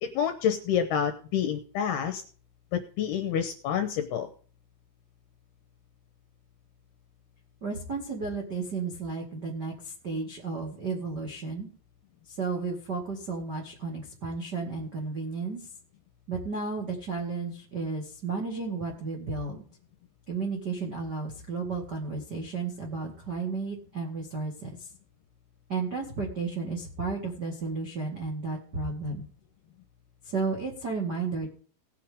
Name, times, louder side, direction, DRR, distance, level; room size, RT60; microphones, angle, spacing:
voice 1, 0.0-2.2 2.7-4.3, left 8 dB, 75° left, 8 dB, 2.4 m, -28 dB
voice 2, 7.6-11.7 12.3-15.7 16.3-19.6 20.3-24.9 25.7-29.2 30.2-31.5, right 4 dB, 60° right, 1 dB, 1.0 m, -33 dB
19.0 x 8.3 x 3.6 m, 0.43 s
omnidirectional pair, 5.7 m